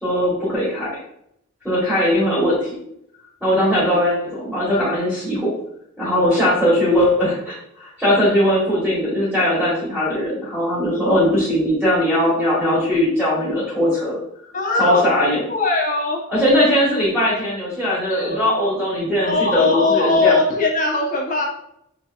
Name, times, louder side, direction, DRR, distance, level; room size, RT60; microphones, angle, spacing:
voice 1, 0.0-0.9 1.6-2.7 3.4-5.5 6.0-14.2 14.8-15.4 16.3-20.3, equal, ahead, -9 dB, 1.5 m, -19 dB
voice 2, 14.5-16.2 18.1-18.5 19.2-21.4, left 3 dB, 40° left, -1 dB, 1.0 m, -20 dB
6.2 x 2.9 x 2.5 m, 0.74 s
head